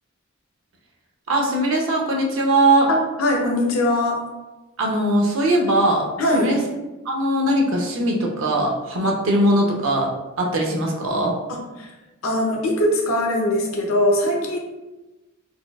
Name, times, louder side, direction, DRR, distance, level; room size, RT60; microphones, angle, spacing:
voice 1, 1.3-2.9 4.8-6.1 6.3-6.6 7.0-10.1 10.4-11.3, right 1 dB, 65° right, -1 dB, 0.7 m, -20 dB
voice 2, 2.9-4.2 6.2-6.6 11.5-11.9 12.2-14.6, left 1 dB, 75° left, 0 dB, 0.7 m, -21 dB
4.2 x 2.3 x 2.3 m, 1.1 s
head